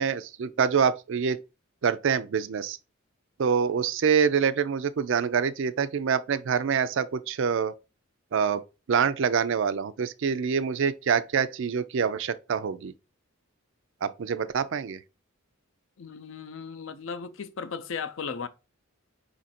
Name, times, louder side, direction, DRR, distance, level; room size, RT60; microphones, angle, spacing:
voice 1, 0.0-1.4 1.8-2.8 3.4-7.7 8.3-8.6 8.9-12.9 14.0-15.0, right 6 dB, 60° right, 0.4 m, -26 dB
voice 2, 16.0-18.5, left 5 dB, 65° left, 0.5 m, -36 dB
5.1 x 2.5 x 4.1 m
head